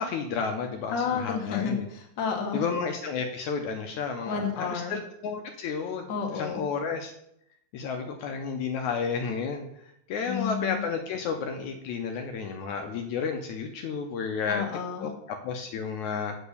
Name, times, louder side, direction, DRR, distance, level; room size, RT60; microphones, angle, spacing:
voice 1, 0.0-1.9 2.5-7.1 7.7-14.6 15.0-16.4, left 5 dB, 75° left, 4 dB, 2.0 m, -32 dB
voice 2, 0.9-2.6 4.2-4.9 6.1-6.6 10.3-10.8 14.5-15.1, left 6 dB, 45° left, 1 dB, 1.7 m, -31 dB
8.2 x 5.4 x 6.8 m, 0.77 s
omnidirectional pair, 3.7 m